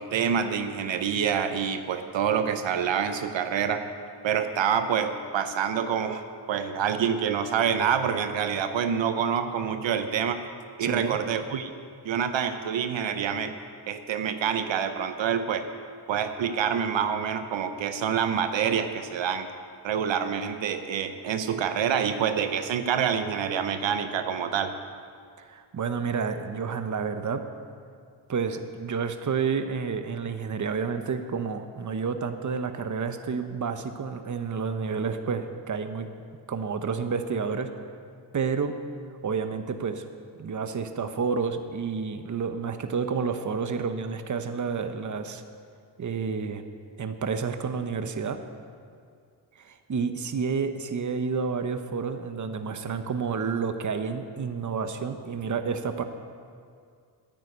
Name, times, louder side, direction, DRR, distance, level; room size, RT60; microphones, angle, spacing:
voice 1, 0.0-3.8 4.2-10.4 10.8-11.7 12.0-13.5 13.9-15.6 16.1-19.5 19.8-24.7, right 7 dB, 80° right, 8 dB, 0.8 m, -27 dB
voice 2, 10.8-11.2 25.4-27.4 28.3-36.1 36.5-37.9 38.3-38.7 39.2-40.0 40.4-45.4 46.0-46.6 47.0-48.4 49.6-56.0, right 5 dB, 40° right, 8 dB, 0.9 m, -30 dB
9.7 x 9.4 x 8.1 m, 2.2 s
cardioid pair, 85°, 45 cm